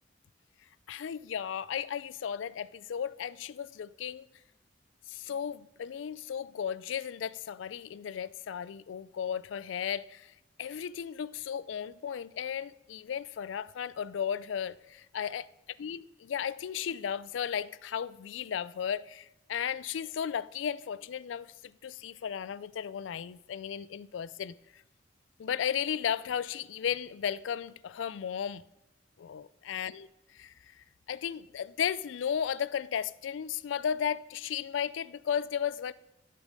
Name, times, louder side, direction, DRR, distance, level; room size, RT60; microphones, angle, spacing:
voice 1, 0.9-4.3 5.1-10.3 10.6-15.5 15.8-24.8 25.4-28.6 29.2-30.1 30.3-35.9, left 8 dB, 90° left, 0.4 m, -35 dB
11.5 x 6.5 x 5.1 m
head